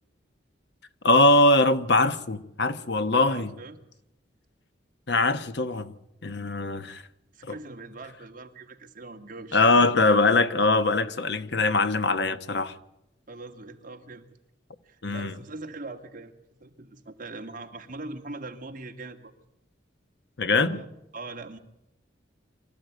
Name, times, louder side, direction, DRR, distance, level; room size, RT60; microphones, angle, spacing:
voice 1, 1.0-3.5 5.1-5.9 6.2-7.0 7.4-7.5 9.5-12.7 15.0-15.3 20.4-20.8, left 2 dB, 65° left, 1.2 m, -22 dB
voice 2, 3.2-3.8 7.3-9.9 13.3-14.2 14.8-16.3 16.6-19.3 20.5-20.9 21.1-21.6, right 2 dB, 45° right, 2.1 m, -41 dB
24.5 x 14.0 x 9.3 m
head